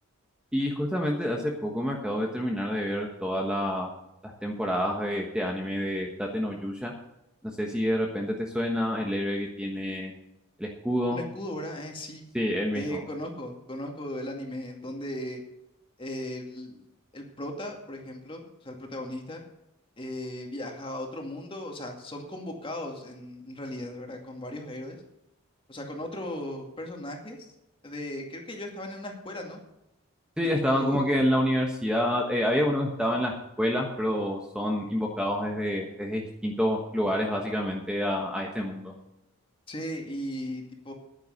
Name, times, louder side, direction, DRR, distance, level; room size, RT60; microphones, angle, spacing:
voice 1, 0.5-3.9 4.2-6.9 7.4-10.1 10.6-11.2 12.3-13.0 30.4-38.9, equal, 5° right, 0 dB, 1.2 m, -28 dB
voice 2, 11.1-12.2 12.7-15.4 16.0-16.8 17.1-19.4 20.0-25.0 25.7-27.4 27.8-29.6 30.7-31.1 39.7-40.9, left 1 dB, 25° left, 2 dB, 2.2 m, -37 dB
10.5 x 9.6 x 6.5 m, 0.87 s
head